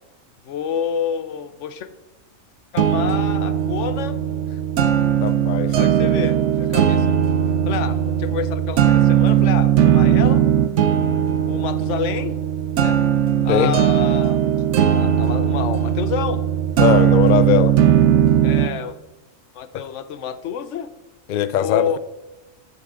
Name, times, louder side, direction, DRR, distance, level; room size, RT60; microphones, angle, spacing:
voice 1, 0.4-1.9 2.7-4.2 4.5-4.6 5.7-7.2 7.7-10.4 11.4-12.4 12.8-13.0 13.4-14.4 14.8-16.4 18.4-19.0 19.5-20.9 21.5-22.0, left 7 dB, 70° left, 1.0 m, -28 dB
sound 1, 2.8-18.8, right 9 dB, 65° right, 0.9 m, -18 dB
voice 2, 5.2-5.8 13.5-13.8 16.8-17.8 19.7-19.8 21.3-22.0, left 10 dB, 90° left, 0.4 m, -20 dB
14.0 x 5.9 x 3.7 m
omnidirectional pair, 1.4 m